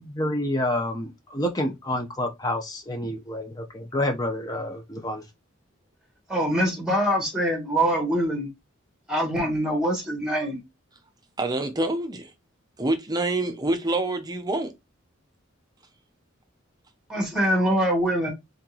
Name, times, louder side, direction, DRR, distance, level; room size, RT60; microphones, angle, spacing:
voice 1, 0.0-5.2, left 1 dB, 20° left, 0.8 m, -28 dB
voice 2, 6.3-8.5 9.1-10.6 17.1-18.3, equal, 5° right, 1.8 m, -24 dB
voice 3, 11.4-12.3 12.8-14.7, right 2 dB, 20° right, 0.7 m, -26 dB
4.3 x 3.9 x 2.9 m
head